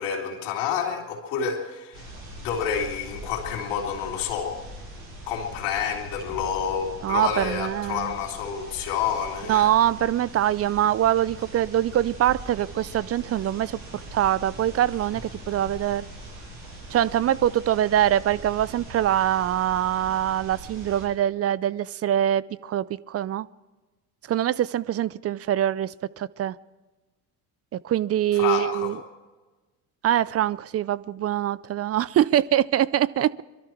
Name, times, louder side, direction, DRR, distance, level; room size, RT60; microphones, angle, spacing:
voice 1, 0.0-2.1 2.3-4.6 5.3-9.7 28.3-29.0, left 7 dB, 70° left, 1 dB, 3.3 m, -29 dB
sound 1, 1.9-21.0, right 1 dB, 80° right, 6.5 m, -41 dB
voice 2, 7.0-8.1 9.5-16.1 16.9-23.5 24.3-26.6 27.7-29.0 30.0-33.4, right 11 dB, 35° right, 19 dB, 0.5 m, -24 dB
23.0 x 13.0 x 4.6 m, 1.2 s
hypercardioid pair, 65°, 44 cm